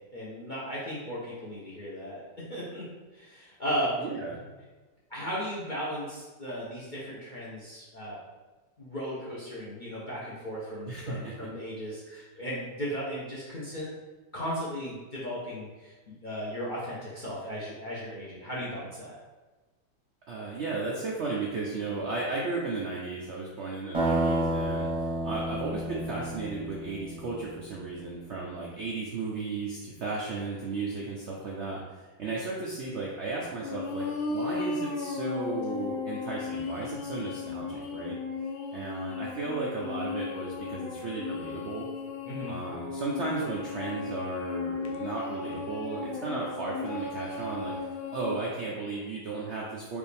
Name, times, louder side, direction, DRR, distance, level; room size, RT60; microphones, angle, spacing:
voice 1, 0.0-4.0 5.1-8.2 8.8-13.9 14.3-19.2 42.2-42.5, equal, 45° left, -7 dB, 0.7 m, -36 dB
voice 2, 4.0-4.5 10.9-11.3 12.1-12.2 20.3-38.2 38.7-41.9 42.5-47.7 48.1-50.0, right 3 dB, 65° right, -4 dB, 0.6 m, -35 dB
sound 1, 23.9-27.7, right 1 dB, 25° right, 0.8 m, -30 dB
sound 2, 33.6-48.4, left 4 dB, 70° left, 1.0 m, -35 dB
5.0 x 2.6 x 3.3 m, 1.2 s
omnidirectional pair, 1.8 m